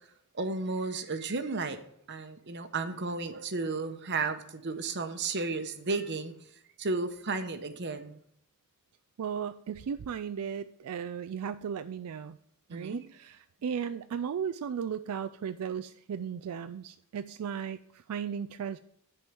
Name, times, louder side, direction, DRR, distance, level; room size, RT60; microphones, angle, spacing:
voice 1, 0.3-1.8 2.1-6.3 6.8-8.2 12.7-13.0, right 3 dB, 50° right, 9 dB, 0.9 m, -33 dB
voice 2, 9.2-12.4 12.7-18.8, right 7 dB, 80° right, 11 dB, 0.4 m, -36 dB
10.5 x 4.6 x 6.9 m, 0.71 s
head